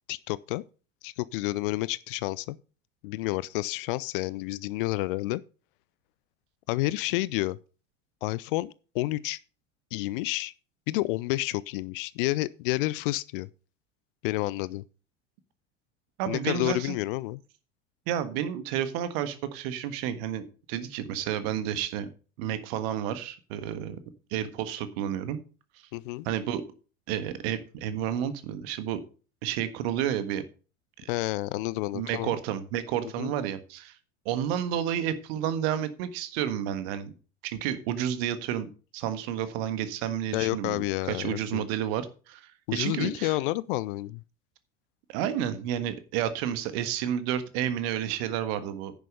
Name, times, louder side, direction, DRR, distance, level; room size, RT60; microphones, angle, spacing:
voice 1, 0.1-0.6 1.0-2.6 3.0-5.4 6.7-7.6 8.2-9.4 9.9-10.5 10.9-13.5 14.2-14.8 16.3-17.4 25.9-26.3 31.1-32.4 33.2-33.3 40.3-41.6 42.7-44.2, left 19 dB, 45° left, 0.5 m, -30 dB
voice 2, 16.2-17.0 18.1-22.1 22.4-24.0 24.3-25.4 26.2-26.6 27.1-29.0 29.4-30.4 31.0-31.1 31.9-33.9 34.2-37.1 37.4-40.8 41.1-43.3 45.1-48.9, right 10 dB, 50° right, 1.6 m, -31 dB
10.5 x 7.0 x 5.5 m
figure-of-eight pair, 75°, 38 cm